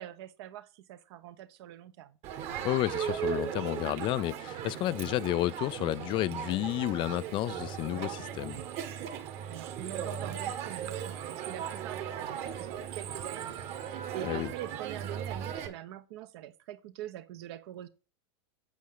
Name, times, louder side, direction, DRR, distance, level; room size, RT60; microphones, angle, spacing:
voice 1, 0.0-2.2 9.5-17.9, right 12 dB, 60° right, 1.1 m, -44 dB
Crowd, 2.2-15.7, right 9 dB, 45° right, 1.7 m, -37 dB
voice 2, 2.6-8.6 14.2-14.5, left 16 dB, 35° left, 0.4 m, -31 dB
8.3 x 7.4 x 3.8 m
hypercardioid pair, 115°, 15 cm